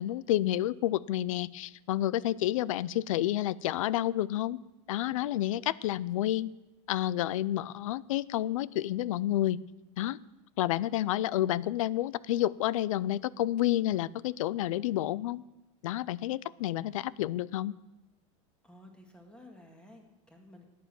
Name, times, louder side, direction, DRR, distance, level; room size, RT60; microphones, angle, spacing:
voice 1, 0.0-4.6 4.9-6.5 6.9-9.6 10.0-10.2 10.6-15.4 15.8-17.7, left 13 dB, 90° left, 22 dB, 0.4 m, -30 dB
voice 2, 18.6-20.7, left 1 dB, 5° left, 3 dB, 1.9 m, -53 dB
11.5 x 9.4 x 7.5 m, 1.0 s
supercardioid pair, 150°, 17 cm